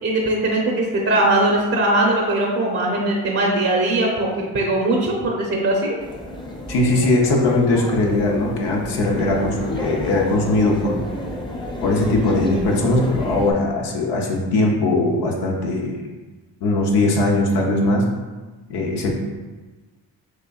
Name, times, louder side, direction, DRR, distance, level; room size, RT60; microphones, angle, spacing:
voice 1, 0.0-6.0, right 1 dB, 35° right, -1 dB, 0.8 m, -20 dB
sound 1, 6.0-13.5, left 1 dB, 10° left, 0.8 m, -31 dB
voice 2, 6.7-10.9 11.8-16.0 16.6-18.1 18.7-19.1, left 2 dB, 75° left, -1 dB, 0.8 m, -20 dB
6.2 x 2.6 x 2.3 m, 1.3 s
supercardioid pair, 70°, 41 cm